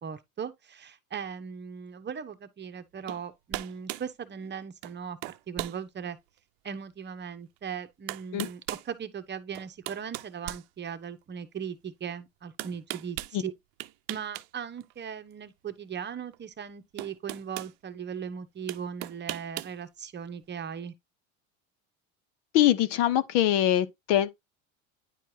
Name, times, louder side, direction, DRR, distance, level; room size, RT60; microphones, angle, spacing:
voice 1, 0.0-5.2 5.5-6.2 6.6-8.6 8.9-13.5 14.1-20.9, right 7 dB, 25° right, 1.0 m, -38 dB
sound 1, 3.1-3.2 3.5-4.1 4.8-5.0 5.2-5.8 6.4-6.5 7.6-7.7 8.1-8.9 9.5-11.2 12.6-13.3 13.8-14.5 14.8-14.9 16.3-16.4 17.0-17.7 18.7-19.8, right 19 dB, 60° right, 0.7 m, -37 dB
voice 2, 22.5-24.3, left 12 dB, 65° left, 1.0 m, -23 dB
10.0 x 4.5 x 2.8 m
hypercardioid pair, 90°, 39 cm